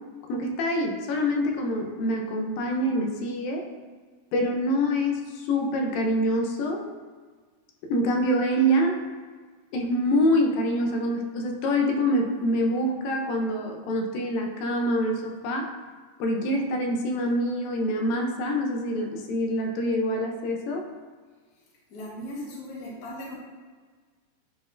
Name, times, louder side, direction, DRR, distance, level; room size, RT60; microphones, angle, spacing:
voice 1, 0.3-3.7 4.3-6.9 7.9-9.0 9.7-15.7 16.2-20.9, equal, 85° left, 2 dB, 2.5 m, -25 dB
voice 2, 21.9-23.3, left 1 dB, 45° left, -5 dB, 1.3 m, -37 dB
10.5 x 4.3 x 2.6 m, 1.5 s
omnidirectional pair, 3.9 m